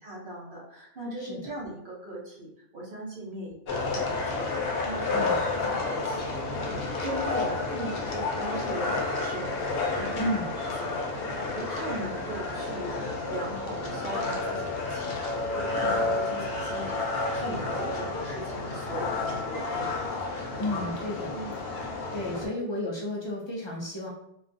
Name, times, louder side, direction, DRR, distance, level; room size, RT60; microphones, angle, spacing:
voice 1, 0.0-6.3 7.0-9.6 9.9-10.3 10.8-11.2 11.5-13.0 13.3-20.1 21.3-21.6 22.3-22.6, right 1 dB, 60° right, -5 dB, 0.8 m, -39 dB
sound 1, 3.7-22.5, left 3 dB, 75° left, 0.8 m, -30 dB
voice 2, 10.2-10.5 20.6-21.4 22.1-24.1, left 1 dB, 50° left, -4 dB, 0.3 m, -32 dB
2.5 x 2.2 x 2.5 m, 0.78 s
omnidirectional pair, 1.0 m